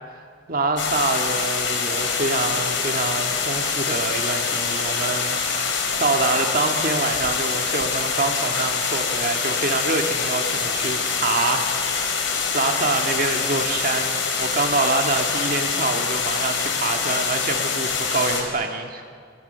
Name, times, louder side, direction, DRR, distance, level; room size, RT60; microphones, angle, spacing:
voice 1, 0.1-12.2 12.5-19.0, right 3 dB, 50° right, 4 dB, 1.8 m, -26 dB
sound 1, 0.8-18.4, left 5 dB, 85° left, 4.6 m, -25 dB
29.0 x 25.0 x 6.8 m, 2.2 s
head